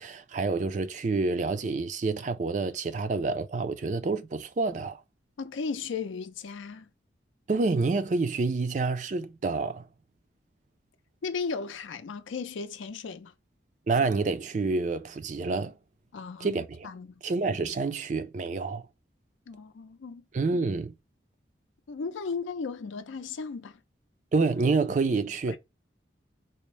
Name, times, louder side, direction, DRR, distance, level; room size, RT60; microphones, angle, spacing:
voice 1, 0.0-5.0 7.5-9.9 13.9-15.7 16.4-16.9 17.2-18.9 20.3-20.9 24.3-25.6, right 3 dB, 40° right, 0.3 m, -28 dB
voice 2, 5.4-6.9 11.2-13.3 16.1-17.2 19.5-20.2 21.9-23.8 25.5-25.6, left 5 dB, 85° left, 0.5 m, -36 dB
4.2 x 2.0 x 3.1 m
head